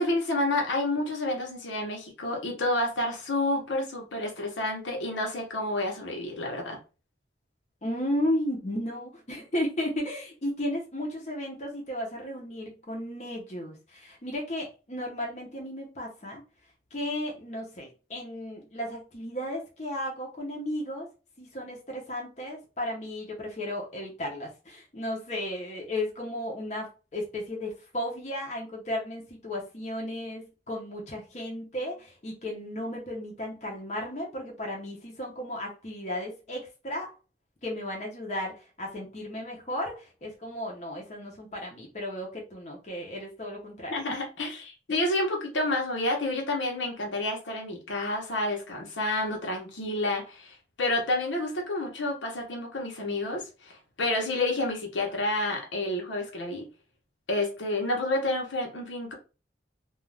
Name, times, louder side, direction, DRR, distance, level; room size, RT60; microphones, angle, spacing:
voice 1, 0.0-6.8 43.9-56.7 57.3-59.1, left 2 dB, 85° left, 0.9 m, -29 dB
voice 2, 7.8-16.4 16.9-21.1 21.4-37.1 37.6-44.1, left 1 dB, 40° left, 0.7 m, -34 dB
2.3 x 2.3 x 3.2 m
head